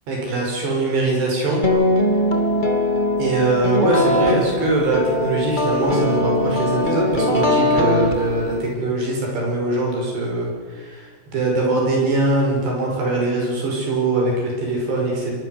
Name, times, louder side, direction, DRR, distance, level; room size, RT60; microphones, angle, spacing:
voice 1, 0.1-1.6 3.2-15.3, right 2 dB, 60° right, -1 dB, 7.6 m, -22 dB
sound 1, 1.6-8.7, left 1 dB, 35° left, 0.7 m, -20 dB
25.0 x 22.5 x 8.0 m, 1.5 s
omnidirectional pair, 5.4 m